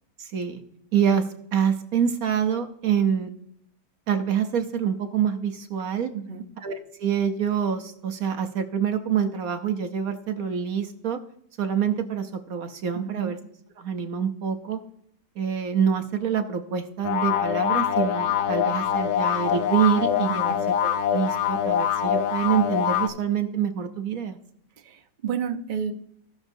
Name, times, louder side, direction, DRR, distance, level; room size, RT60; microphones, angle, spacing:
voice 1, 0.2-0.6 0.9-3.3 4.1-6.1 6.6-11.2 11.6-13.4 13.8-14.8 15.4-24.4, right 8 dB, 60° right, 7 dB, 1.0 m, -26 dB
voice 2, 6.1-6.4 12.9-13.3 20.3-20.6 24.8-25.9, right 8 dB, 45° right, 3 dB, 0.6 m, -31 dB
sound 1, 17.0-23.1, left 9 dB, 65° left, 1.3 m, -24 dB
16.5 x 6.4 x 2.6 m, 0.70 s
omnidirectional pair, 1.9 m